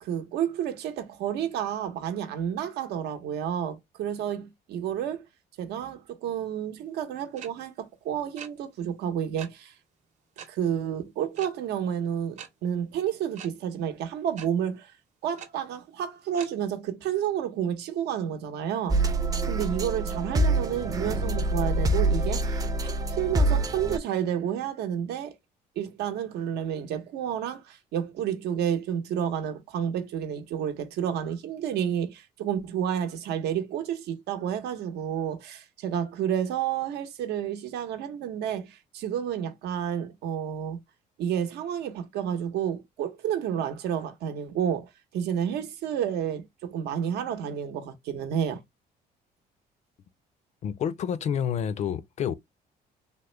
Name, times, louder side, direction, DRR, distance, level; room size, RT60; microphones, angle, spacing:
voice 1, 0.0-5.2 5.6-9.7 10.5-14.9 15.2-19.0 19.4-25.3 25.8-40.8 41.2-48.6, right 9 dB, 90° right, 0.8 m, -30 dB
sound 1, 7.4-7.5 8.4-8.5 9.4-9.5 10.4-10.5 11.4-11.5 12.4-12.5 13.4-13.5 14.4-14.5 15.4-15.5 16.4-16.5, right 8 dB, 45° right, 0.7 m, -41 dB
sound 2, 18.9-24.0, right 2 dB, 20° right, 0.4 m, -26 dB
voice 2, 50.6-52.3, left 8 dB, 45° left, 0.4 m, -28 dB
3.5 x 2.0 x 3.1 m
cardioid pair, 150°, 17 cm